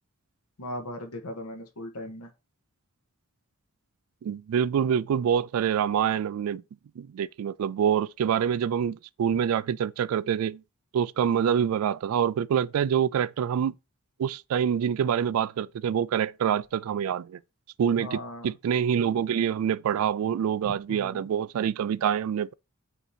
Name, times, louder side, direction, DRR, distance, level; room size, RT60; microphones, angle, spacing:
voice 1, 0.6-2.3 18.0-18.5 20.9-21.2, left 1 dB, 90° left, 1.2 m, -38 dB
voice 2, 4.2-6.6 7.0-10.6 10.9-13.7 14.2-17.4 17.8-22.5, right 8 dB, 70° right, 0.3 m, -26 dB
8.1 x 2.9 x 4.2 m
head